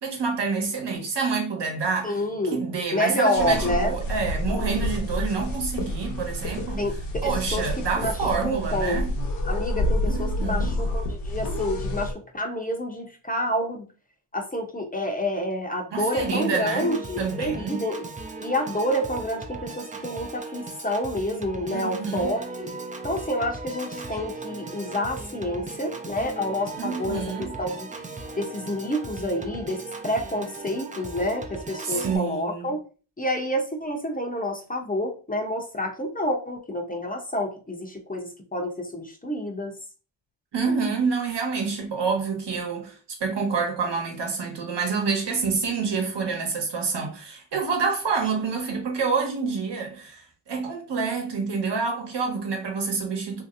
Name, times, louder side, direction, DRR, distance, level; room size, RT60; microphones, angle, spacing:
voice 1, 0.0-2.2 2.5-6.9 7.2-9.1 10.1-10.8 15.9-17.9 21.7-22.4 26.8-27.5 31.8-32.7 40.5-42.9 43.2-53.4, right 5 dB, 60° right, 1.2 m, -28 dB
voice 2, 2.0-2.6 2.9-4.0 6.8-9.0 9.5-13.9 14.3-18.0 18.4-22.7 23.0-27.9 28.4-32.8 33.2-39.7, equal, 20° left, 0.7 m, -28 dB
sound 1, 3.4-12.1, left 1 dB, 90° left, 0.9 m, -28 dB
Piano / Organ, 16.2-32.2, right 3 dB, 15° right, 0.5 m, -37 dB
3.1 x 2.8 x 2.6 m
cardioid pair, 65°, 46 cm